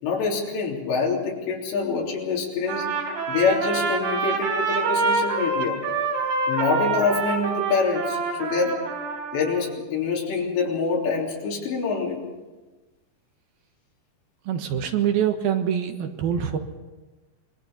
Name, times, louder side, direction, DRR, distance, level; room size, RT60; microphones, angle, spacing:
voice 1, 0.0-2.9 3.3-5.8 6.5-8.8 9.3-12.2, left 4 dB, 80° left, -3 dB, 5.6 m, -25 dB
Trumpet, 2.7-9.6, right 4 dB, 85° right, 6.0 m, -26 dB
voice 2, 14.5-16.6, right 9 dB, 65° right, 6 dB, 3.0 m, -24 dB
25.5 x 21.5 x 5.6 m, 1.2 s
omnidirectional pair, 5.0 m